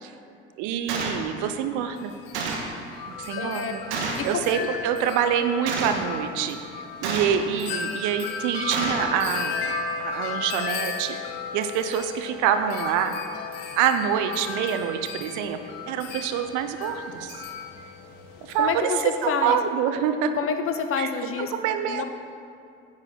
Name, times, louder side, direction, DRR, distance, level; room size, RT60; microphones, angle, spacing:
voice 1, 0.6-2.1 3.1-3.8 4.2-6.6 7.0-9.6 10.0-11.2 11.5-13.1 13.8-15.6 15.9-17.4 18.4-18.9 19.2-20.3 21.0-21.1 21.4-22.0, right 8 dB, 60° right, 9 dB, 0.7 m, -26 dB
Gunshot gunfire, 0.9-1.2 2.3-2.7 3.9-4.3 5.7-6.1 7.0-7.5 8.7-9.1, right 4 dB, 80° right, 1.1 m, -29 dB
Wind chime, 2.0-18.8, left 5 dB, 70° left, 0.9 m, -35 dB
voice 2, 3.4-3.7 4.2-4.7 18.5-19.6 20.3-21.5 21.8-22.0, left 6 dB, 40° left, 8 dB, 0.8 m, -28 dB
9.7 x 4.2 x 6.3 m, 2.4 s
figure-of-eight pair, 50°, 34 cm